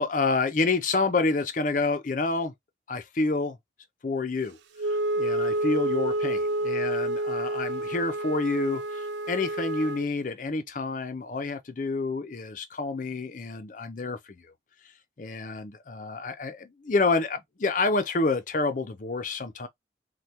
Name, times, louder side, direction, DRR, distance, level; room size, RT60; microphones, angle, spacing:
voice 1, 0.0-2.5 2.9-3.6 4.0-4.6 5.2-14.4 15.2-19.7, left 3 dB, 45° left, 0.5 m, -28 dB
Wind instrument woodwind instrument, 4.8-10.1, right 1 dB, 75° right, 0.4 m, -29 dB
3.3 x 2.2 x 2.8 m
head